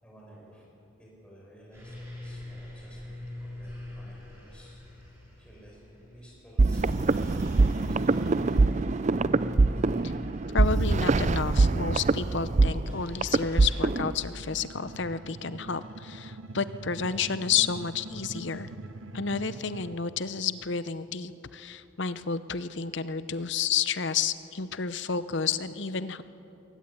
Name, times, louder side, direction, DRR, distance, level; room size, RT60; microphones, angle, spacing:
voice 1, 0.0-0.6 1.0-3.2 3.4-4.8 5.4-8.7, equal, 5° left, -4 dB, 6.5 m, -53 dB
sound 1, 1.7-13.8, left 1 dB, 15° right, 7.5 m, -44 dB
sound 2, 6.6-14.1, right 3 dB, 35° right, 0.4 m, -24 dB
voice 2, 10.5-18.7 19.1-26.2, left 6 dB, 60° left, 13 dB, 0.8 m, -31 dB
sound 3, 13.7-19.9, right 2 dB, 80° right, 0.9 m, -43 dB
21.5 x 18.5 x 8.8 m, 3.0 s
head